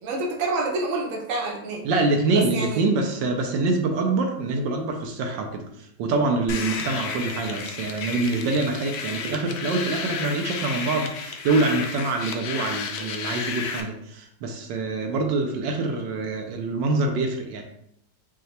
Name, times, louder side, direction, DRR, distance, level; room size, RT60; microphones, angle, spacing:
voice 1, 0.0-1.8 2.3-2.8, right 2 dB, 55° right, -1 dB, 1.1 m, -27 dB
voice 2, 1.8-17.6, right 3 dB, 85° right, 3 dB, 1.3 m, -25 dB
sound 1, 6.5-13.8, left 5 dB, 70° left, 0.8 m, -32 dB
5.3 x 2.3 x 3.2 m, 0.73 s
omnidirectional pair, 2.0 m